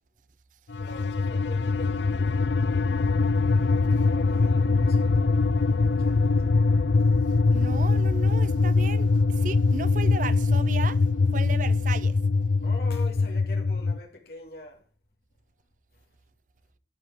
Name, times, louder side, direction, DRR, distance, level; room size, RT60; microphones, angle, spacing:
sound 1, 0.7-14.0, left 3 dB, 75° left, 0.5 m, -23 dB
voice 1, 0.8-2.6 4.0-6.4 12.6-14.8, left 2 dB, 55° left, 2.5 m, -44 dB
voice 2, 7.5-11.0 11.3-12.2, right 4 dB, 45° right, 0.5 m, -35 dB
13.5 x 4.8 x 7.5 m
head